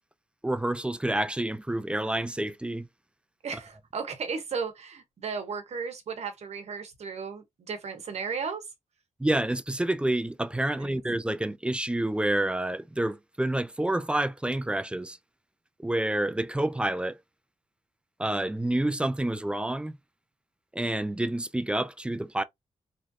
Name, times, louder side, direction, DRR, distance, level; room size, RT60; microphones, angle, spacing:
voice 1, 0.4-2.9 3.5-3.6 9.2-15.2 15.8-17.2 18.2-19.9 20.7-22.4, right 1 dB, 10° right, 0.3 m, -28 dB
voice 2, 3.4-8.6 10.8-10.9, right 5 dB, 65° right, 1.0 m, -35 dB
3.1 x 2.5 x 2.5 m
cardioid pair, 75°, 12 cm